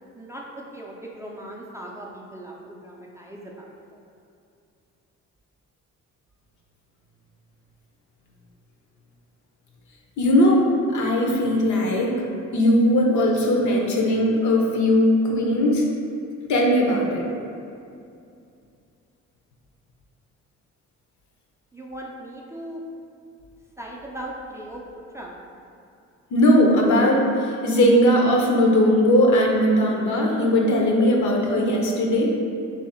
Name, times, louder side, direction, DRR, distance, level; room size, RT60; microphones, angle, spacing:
voice 1, 0.1-4.0 21.7-22.8 23.8-24.8 25.1-25.3, right 1 dB, 10° right, -2 dB, 0.4 m, -38 dB
voice 2, 10.2-10.6 10.9-12.1 12.5-15.8 16.5-17.2 26.3-32.3, left 1 dB, 70° left, -1 dB, 0.7 m, -19 dB
3.3 x 2.8 x 4.2 m, 2.5 s
cardioid pair, 90°, 30 cm